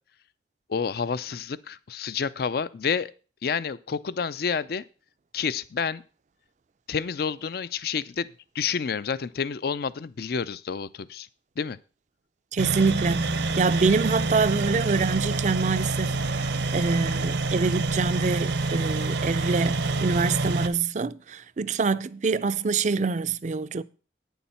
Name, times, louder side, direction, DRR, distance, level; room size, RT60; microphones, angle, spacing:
voice 1, 0.7-3.1 3.4-4.8 5.3-6.0 6.9-8.3 8.5-11.3 11.6-11.8, left 6 dB, 55° left, 0.4 m, -29 dB
voice 2, 12.5-16.5 16.7-23.8, right 4 dB, 40° right, 0.4 m, -25 dB
sound 1, 12.6-20.7, right 3 dB, 75° right, 0.9 m, -27 dB
9.5 x 7.1 x 5.6 m
head